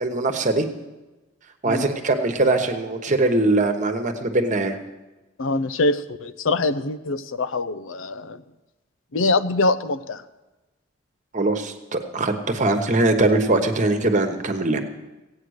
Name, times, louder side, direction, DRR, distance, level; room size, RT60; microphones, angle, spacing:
voice 1, 0.0-0.7 1.6-4.8 11.3-14.8, right 2 dB, 40° right, 6 dB, 1.1 m, -21 dB
voice 2, 5.4-8.4 9.1-10.2, left 2 dB, 85° left, 13 dB, 0.6 m, -24 dB
16.0 x 8.8 x 6.4 m, 1.1 s
head